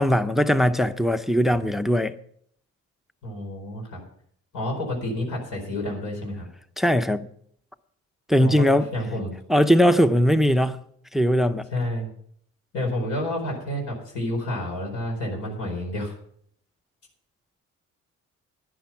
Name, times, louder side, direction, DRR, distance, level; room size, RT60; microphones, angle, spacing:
voice 1, 0.0-2.1 6.8-7.3 8.3-8.9 9.5-10.8 11.1-11.7, equal, ahead, 0.6 m, -20 dB
voice 2, 3.2-4.0 4.5-6.5 8.4-9.3 11.7-12.1 12.7-16.1, left 1 dB, 75° left, 4.6 m, -29 dB
10.5 x 10.5 x 5.8 m
cardioid pair, 90°, 30 cm